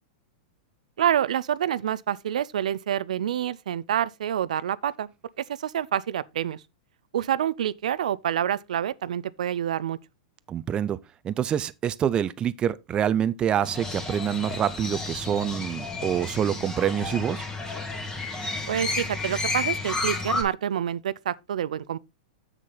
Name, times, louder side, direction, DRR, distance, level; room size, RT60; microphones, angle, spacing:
voice 1, 1.0-5.1 5.5-6.6 7.1-10.0 18.7-22.0, right 10 dB, 85° right, 0.4 m, -27 dB
voice 2, 10.5-11.0 11.2-17.4, right 9 dB, 25° right, 0.5 m, -26 dB
Crow, 13.6-20.4, left 3 dB, 15° left, 1.9 m, -31 dB
7.4 x 6.5 x 3.8 m
hypercardioid pair, 125°, 4 cm